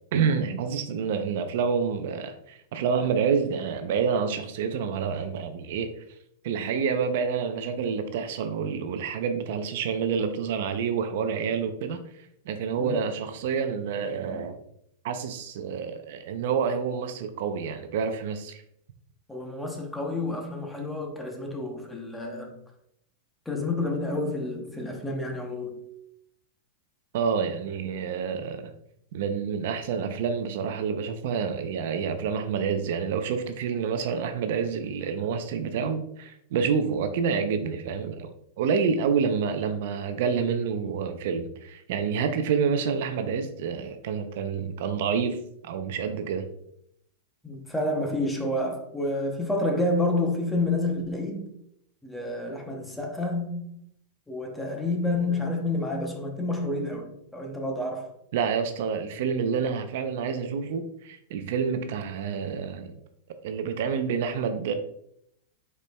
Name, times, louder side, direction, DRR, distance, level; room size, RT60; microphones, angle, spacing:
voice 1, 0.1-5.9 6.4-12.0 12.5-14.6 15.0-18.6 27.1-28.7 29.1-46.5 58.3-62.9 63.4-64.7, right 6 dB, 65° right, 0.5 m, -28 dB
voice 2, 19.3-22.6 23.5-25.8 47.4-51.5 52.0-53.7 54.3-58.1, left 2 dB, 5° left, 0.7 m, -29 dB
5.1 x 4.3 x 2.2 m
supercardioid pair, 145°, 0 cm